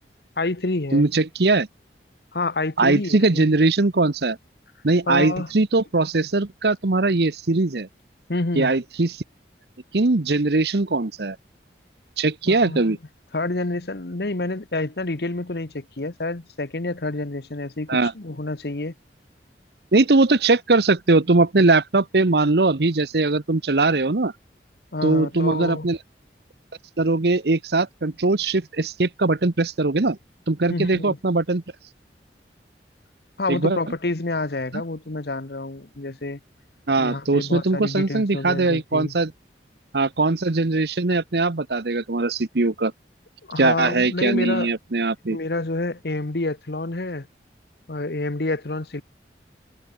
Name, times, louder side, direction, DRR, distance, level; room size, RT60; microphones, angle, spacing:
voice 1, 0.4-1.1 2.3-3.5 5.1-5.5 8.3-8.7 12.5-13.0 13.3-18.9 24.9-25.9 30.7-31.2 33.4-36.4 37.0-39.1 43.5-44.7 45.3-47.3 47.9-49.0, left 2 dB, 65° left, 1.2 m, -28 dB
voice 2, 0.9-1.7 2.8-4.4 4.8-7.9 8.6-9.2 9.9-11.4 12.2-13.0 17.9-18.1 19.9-24.3 25.0-26.0 27.0-30.2 30.5-31.6 33.5-33.8 36.9-39.3 39.9-42.9 43.6-45.4, right 3 dB, 70° right, 1.0 m, -20 dB
head